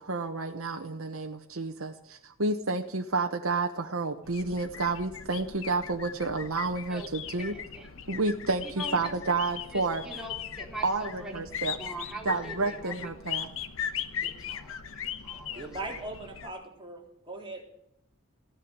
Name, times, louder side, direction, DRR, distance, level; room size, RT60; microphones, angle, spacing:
voice 1, 0.0-7.5 8.1-10.0 10.8-11.8 12.2-13.5, right 3 dB, 70° right, 4 dB, 1.2 m, -30 dB
sound 1, 4.2-16.5, left 8 dB, 65° left, 1.0 m, -39 dB
voice 2, 7.5-7.9 8.6-9.1 9.7-11.4 11.8-13.3 14.5-15.7, right 1 dB, 5° right, -1 dB, 3.7 m, -43 dB
voice 3, 15.5-17.7, right 2 dB, 25° right, 0 dB, 3.8 m, -40 dB
15.5 x 10.0 x 8.8 m, 0.71 s
head